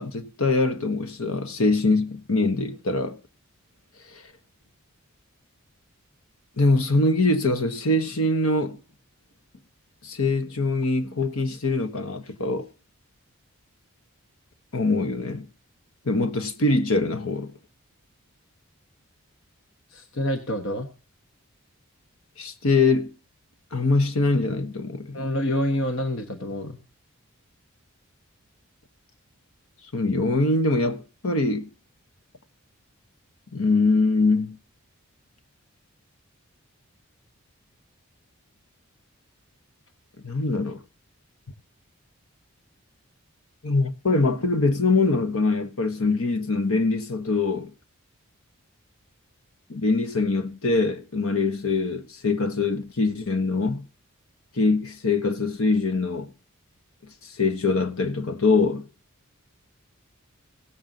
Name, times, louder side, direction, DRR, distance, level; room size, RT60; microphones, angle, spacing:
voice 1, 0.0-3.2 4.1-4.2 6.6-8.8 10.0-12.7 14.7-15.5 16.0-17.5 22.4-23.1 23.7-25.2 29.9-31.7 33.5-34.6 40.2-40.8 43.6-47.7 49.7-53.9 54.6-56.3 57.4-58.8, left 3 dB, 75° left, 1.3 m, -23 dB
voice 2, 19.9-20.9 25.1-26.8, left 1 dB, 60° left, 1.2 m, -27 dB
17.0 x 7.7 x 3.9 m
head